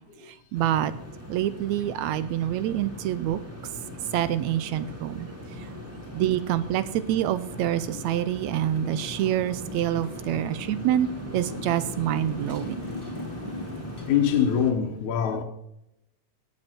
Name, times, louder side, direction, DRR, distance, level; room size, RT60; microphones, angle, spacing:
sound 1, 0.5-14.7, equal, 5° right, 1.9 m, -40 dB
voice 1, 0.5-0.9 1.3-3.4 4.1-5.3 6.1-11.1 11.3-12.8, right 12 dB, 75° right, 1.7 m, -26 dB
Motorcycle, 8.6-14.1, left 1 dB, 10° left, 1.6 m, -40 dB
voice 2, 14.1-15.4, left 8 dB, 75° left, 2.4 m, -24 dB
18.0 x 7.6 x 4.4 m
omnidirectional pair, 3.6 m